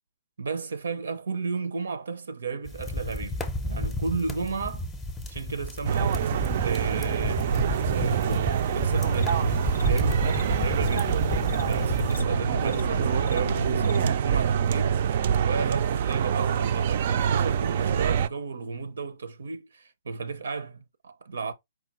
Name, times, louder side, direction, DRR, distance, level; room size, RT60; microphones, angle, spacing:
voice 1, 0.4-4.9 5.3-6.2 6.6-9.6 9.8-11.2 11.7-15.0 15.4-21.5, right 4 dB, 85° right, 0.6 m, -34 dB
sound 1, 2.6-12.2, left 1 dB, 5° left, 0.6 m, -33 dB
sound 2, 5.8-18.3, right 8 dB, 45° right, 0.3 m, -25 dB
sound 3, 8.8-14.1, left 2 dB, 85° left, 0.4 m, -33 dB
4.7 x 2.2 x 4.2 m
hypercardioid pair, 160°, 0 cm